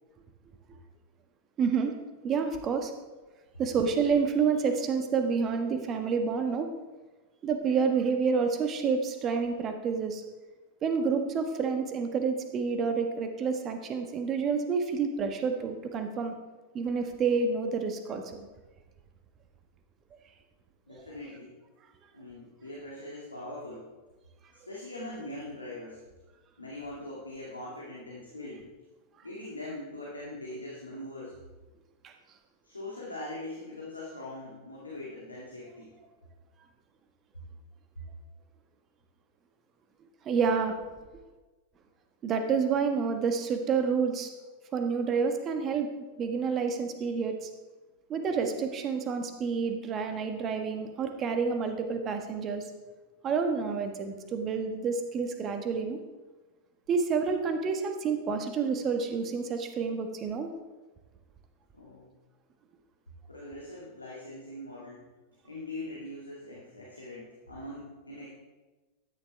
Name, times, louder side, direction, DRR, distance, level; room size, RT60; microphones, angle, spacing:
voice 1, 1.6-1.9 2.2-2.9 3.6-6.7 7.4-10.2 10.8-16.3 16.7-18.5 32.0-32.1 40.2-40.8 42.2-44.3 44.7-45.9 46.2-47.5 48.1-52.7 53.2-56.0 56.9-60.5, right 5 dB, 30° right, 6 dB, 1.4 m, -29 dB
voice 2, 20.9-21.6 22.1-23.9 24.5-26.0 26.6-28.7 29.2-31.4 32.6-35.9 61.7-62.1 63.3-65.1 65.4-68.3, left 1 dB, 80° left, -5 dB, 2.2 m, -42 dB
14.0 x 10.0 x 3.5 m, 1.2 s
figure-of-eight pair, 90°, 0 cm